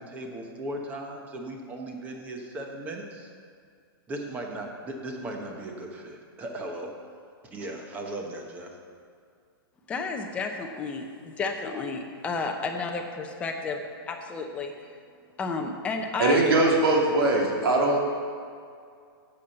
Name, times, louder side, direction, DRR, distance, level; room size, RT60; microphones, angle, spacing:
voice 1, 0.0-3.3 4.1-6.9 7.5-8.8, right 1 dB, 10° right, 2 dB, 1.0 m, -37 dB
voice 2, 9.9-14.7 15.4-16.4, left 4 dB, 10° left, 3 dB, 0.7 m, -32 dB
voice 3, 16.2-18.0, right 2 dB, 75° right, -2 dB, 2.7 m, -21 dB
8.3 x 7.2 x 7.9 m, 2.3 s
hypercardioid pair, 170°, 12 cm